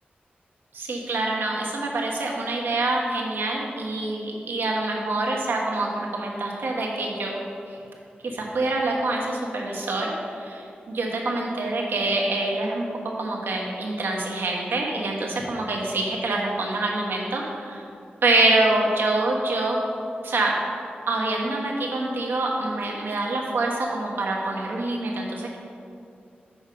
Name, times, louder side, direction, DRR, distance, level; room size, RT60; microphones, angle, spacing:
voice 1, 0.7-7.4 8.2-12.9 13.2-17.9 18.2-19.8 20.2-20.5 21.1-25.6, right 2 dB, 80° right, -1 dB, 1.2 m, -26 dB
6.9 x 5.6 x 5.0 m, 2.5 s
wide cardioid pair, 160°, 4 cm